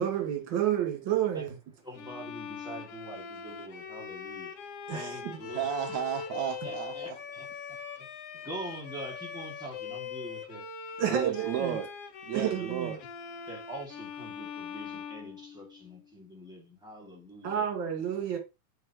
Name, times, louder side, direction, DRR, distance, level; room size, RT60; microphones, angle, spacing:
voice 1, 0.0-1.5 4.9-5.4 11.0-11.8 12.3-13.0 17.4-18.4, right 9 dB, 45° right, 2.2 m, -30 dB
voice 2, 1.8-4.5 4.9-5.6 6.6-7.5 8.0-8.1 8.4-10.6 11.0-11.4 12.3-12.7 13.5-17.6, right 1 dB, ahead, 1.0 m, -44 dB
Bowed string instrument, 1.9-16.0, left 7 dB, 70° left, 1.5 m, -42 dB
voice 3, 5.5-6.9 11.0-11.9 12.3-13.0, right 10 dB, 75° right, 1.7 m, -33 dB
8.1 x 4.7 x 2.9 m
omnidirectional pair, 3.8 m